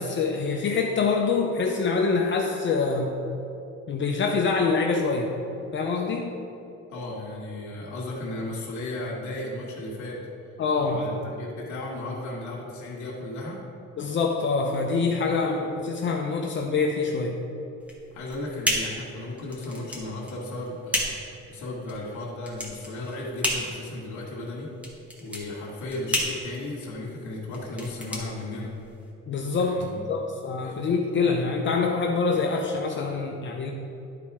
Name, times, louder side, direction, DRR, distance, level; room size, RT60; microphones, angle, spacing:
voice 1, 0.0-3.2 3.9-5.3 5.7-6.3 10.6-11.0 14.0-17.4 29.3-33.7, left 4 dB, 40° left, 1 dB, 0.6 m, -25 dB
voice 2, 6.9-10.2 10.8-13.6 18.1-24.7 25.2-28.7 29.5-30.0 30.6-30.8, left 2 dB, 75° left, -4 dB, 1.7 m, -35 dB
sound 1, 17.8-29.1, left 1 dB, 5° right, 1.2 m, -32 dB
11.0 x 4.2 x 4.8 m, 2.8 s
cardioid pair, 140°, 30 cm